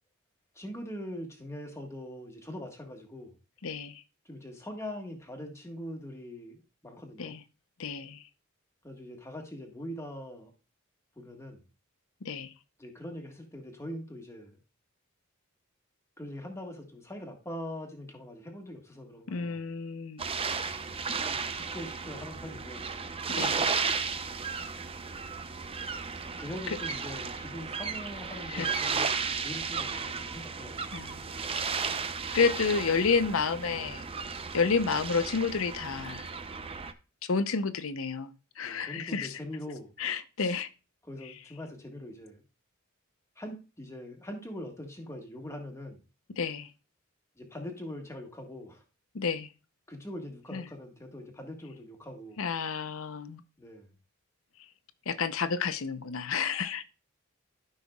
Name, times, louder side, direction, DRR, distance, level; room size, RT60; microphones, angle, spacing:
voice 1, 0.6-3.3 4.3-7.3 8.8-10.5 11.2-11.6 12.8-14.6 16.2-19.6 21.3-22.9 26.4-31.0 34.7-34.9 38.6-39.9 41.0-42.4 43.4-46.0 47.4-48.8 49.9-52.4 53.6-53.9, left 1 dB, 15° left, 1.6 m, -42 dB
voice 2, 3.6-4.0 7.2-7.4 7.8-8.3 12.2-12.5 19.3-20.3 23.3-23.7 26.7-26.8 28.5-28.7 30.9-31.2 31.6-31.9 32.3-34.0 34.5-36.3 37.2-39.4 40.0-40.7 41.2-41.3 46.3-46.7 49.1-49.5 50.5-50.7 52.4-53.4 54.6-54.7 55.1-56.8, left 5 dB, 70° left, 0.7 m, -30 dB
sound 1, 20.2-36.9, right 5 dB, 25° right, 0.6 m, -34 dB
13.0 x 5.7 x 2.3 m
head